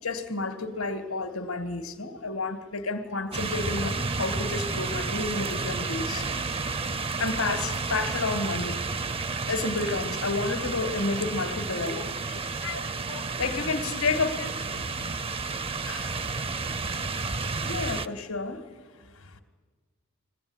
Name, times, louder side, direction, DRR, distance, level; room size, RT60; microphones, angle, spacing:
voice 1, 0.0-6.3 7.2-8.8 9.5-12.0 13.4-14.5 15.8-16.1 17.6-18.6 19.3-19.4, left 3 dB, 85° left, 2.0 m, -30 dB
sound 1, 3.3-18.1, right 4 dB, 25° right, 0.5 m, -31 dB
voice 2, 11.9-13.5 13.9-14.5, left 6 dB, 60° left, 0.7 m, -42 dB
21.5 x 15.5 x 9.8 m
head